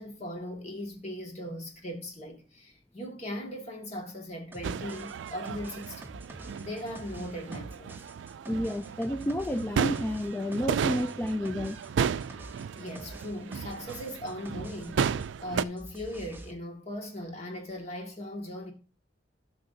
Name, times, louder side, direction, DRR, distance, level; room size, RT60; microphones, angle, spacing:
voice 1, 0.0-6.1 6.6-8.0 12.7-15.0 15.4-18.7, left 1 dB, 40° left, 2.0 m, -39 dB
sound 1, 4.5-15.3 15.6-16.5, right 1 dB, 10° right, 0.7 m, -47 dB
sound 2, 4.6-15.6, right 7 dB, 80° right, 0.3 m, -34 dB
voice 2, 8.5-11.8, equal, 10° left, 0.3 m, -30 dB
13.0 x 6.0 x 2.8 m
head